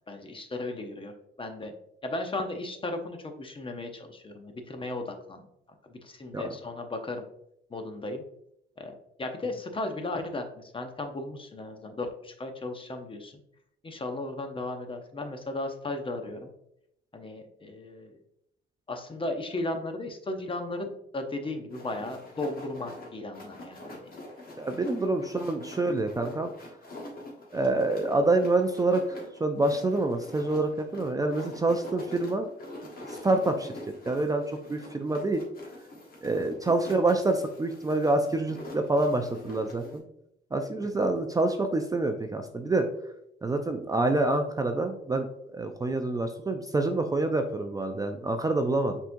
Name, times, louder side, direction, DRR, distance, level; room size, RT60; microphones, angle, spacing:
voice 1, 0.1-1.1 1.4-1.7 2.0-5.5 5.8-7.3 7.7-8.2 8.8-13.3 13.8-16.5 17.1-18.2 18.9-24.1, left 2 dB, 25° left, 5 dB, 0.7 m, -35 dB
sound 1, 21.7-40.0, left 1 dB, 45° left, 1.4 m, -45 dB
voice 2, 24.6-26.5 27.5-32.5 33.1-33.7 34.1-35.4 36.2-40.0 40.5-42.9 43.4-45.3 45.5-49.0, right 2 dB, 20° right, 5 dB, 0.4 m, -27 dB
5.4 x 3.7 x 2.6 m, 0.77 s
cardioid pair, 90°, 20 cm